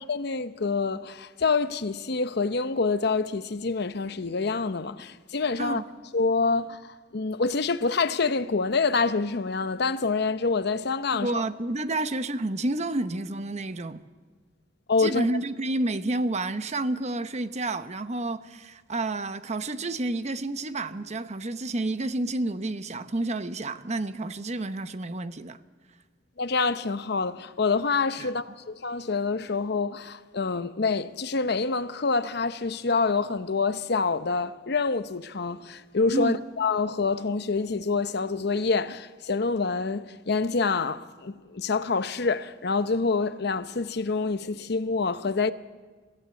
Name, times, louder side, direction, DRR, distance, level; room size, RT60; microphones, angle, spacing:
voice 1, 0.1-5.8 6.1-11.4 14.9-15.3 26.4-45.5, left 4 dB, 65° left, 0.8 m, -26 dB
voice 2, 11.1-14.0 15.0-25.6 28.2-28.3 36.1-36.4, right 2 dB, 40° right, 0.8 m, -30 dB
25.0 x 15.0 x 8.3 m
head